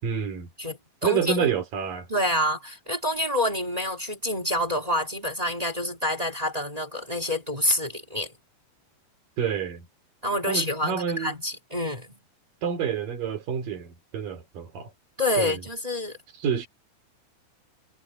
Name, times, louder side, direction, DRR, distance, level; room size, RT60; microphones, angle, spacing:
voice 1, 0.0-0.5 1.0-2.1 9.4-9.9 10.5-11.3 12.6-14.9 15.4-15.6 16.4-16.7, right 7 dB, 55° right, 5.2 m, -28 dB
voice 2, 0.6-1.5 2.1-8.3 10.2-12.2 15.2-16.2, left 1 dB, 10° right, 1.9 m, -27 dB
omnidirectional pair, 4.8 m